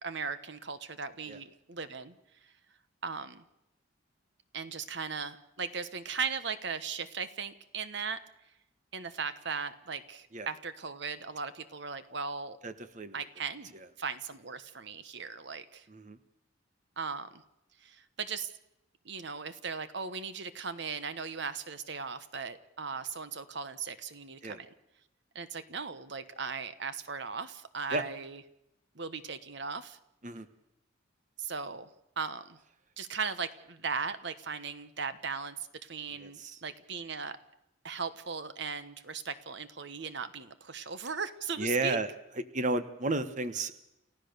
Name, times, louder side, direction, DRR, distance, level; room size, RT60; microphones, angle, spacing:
voice 1, 0.0-2.1 3.0-3.4 4.5-8.2 8.9-12.6 13.1-13.7 14.0-15.8 17.0-17.4 17.8-18.5 19.0-24.7 25.3-28.4 29.0-30.0 31.4-31.9 32.2-32.6 33.0-35.5 35.8-37.4 37.8-42.0, right 5 dB, 60° right, 12 dB, 1.2 m, -38 dB
voice 2, 12.6-13.1 15.9-16.2 24.4-24.6 27.9-28.0 30.2-30.5 36.2-36.6 41.6-42.1 42.5-43.8, right 2 dB, 40° right, 11 dB, 1.2 m, -32 dB
29.5 x 15.5 x 6.8 m, 0.87 s
head